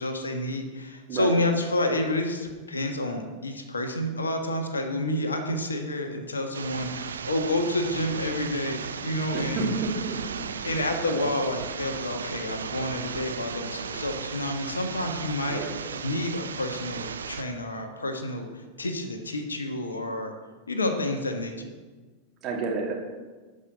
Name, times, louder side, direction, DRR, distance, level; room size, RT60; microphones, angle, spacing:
voice 1, 0.0-9.7 10.6-15.6 16.0-20.3 20.7-21.7, left 1 dB, 75° left, 5 dB, 1.4 m, -29 dB
sound 1, 6.5-17.4, right 6 dB, 70° right, 0.6 m, -36 dB
voice 2, 9.3-10.5 11.0-11.2 15.5-15.8 22.4-22.9, right 3 dB, 35° right, -1 dB, 2.6 m, -31 dB
12.5 x 5.5 x 6.5 m, 1.3 s
figure-of-eight pair, 90°, 0 cm